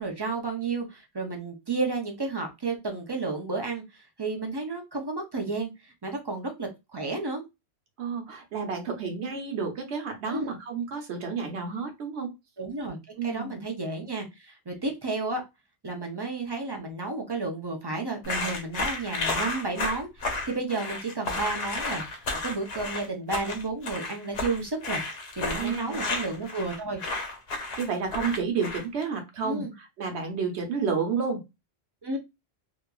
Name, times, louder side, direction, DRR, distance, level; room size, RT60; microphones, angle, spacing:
voice 1, 0.0-7.4 10.3-10.5 12.6-13.0 13.2-15.4 15.8-25.0 25.3-27.0 29.4-29.7 32.0-32.2, right 3 dB, 35° right, 2 dB, 0.4 m, -32 dB
voice 2, 8.0-12.3 13.2-13.6 25.6-26.1 27.8-31.4, right 5 dB, 80° right, 4 dB, 1.1 m, -30 dB
sound 1, 18.2-29.0, left 3 dB, 70° left, 0.9 m, -32 dB
2.9 x 2.4 x 2.2 m, 0.23 s
omnidirectional pair, 1.1 m